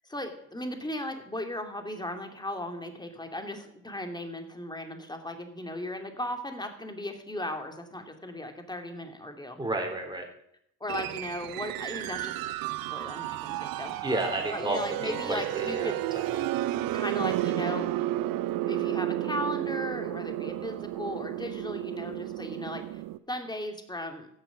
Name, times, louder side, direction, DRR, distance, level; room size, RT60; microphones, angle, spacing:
voice 1, 0.0-9.6 10.8-12.5 12.9-14.1 14.5-16.0 16.9-17.9 18.7-23.0 23.3-24.3, left 1 dB, 10° left, 5 dB, 2.6 m, -36 dB
voice 2, 9.6-10.3 14.0-15.9, right 2 dB, 10° right, 2 dB, 4.0 m, -31 dB
sound 1, 10.9-23.2, right 14 dB, 65° right, 0.7 m, -32 dB
16.0 x 6.5 x 5.9 m, 0.74 s
hypercardioid pair, 55°, 37 cm